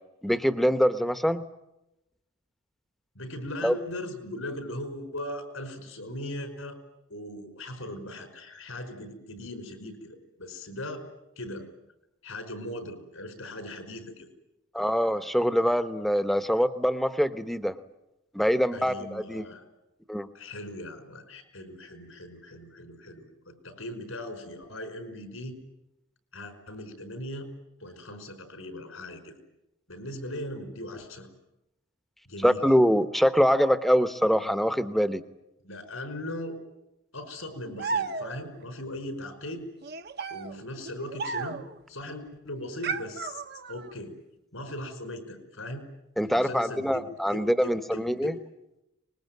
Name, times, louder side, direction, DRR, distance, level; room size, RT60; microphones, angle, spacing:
voice 1, 0.2-1.4 3.6-3.7 14.7-17.7 18.3-19.4 20.1-20.3 32.4-35.2 46.2-48.3, equal, ahead, 11 dB, 0.9 m, -24 dB
voice 2, 3.1-6.8 7.1-11.0 11.4-11.7 12.2-14.3 18.7-19.6 20.3-25.6 26.3-27.5 27.8-29.4 29.9-31.3 32.2-32.6 35.6-36.6 37.1-39.7 40.3-41.6 41.9-43.4 43.7-44.1 44.5-45.8 46.3-48.3, left 1 dB, 80° left, 8 dB, 5.1 m, -39 dB
sound 1, 37.8-38.6 39.8-41.8 42.8-43.9, right 4 dB, 50° right, 0.9 m, -34 dB
25.0 x 21.0 x 9.4 m, 0.91 s
head